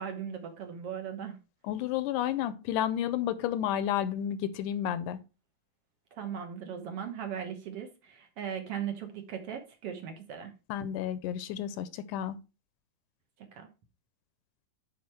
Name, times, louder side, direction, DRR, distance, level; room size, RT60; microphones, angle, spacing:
voice 1, 0.0-1.4 6.1-10.5 13.5-13.7, right 8 dB, 60° right, 1.8 m, -38 dB
voice 2, 1.7-5.2 10.7-12.4, left 10 dB, 80° left, 2.1 m, -31 dB
9.5 x 4.3 x 4.4 m
omnidirectional pair, 3.7 m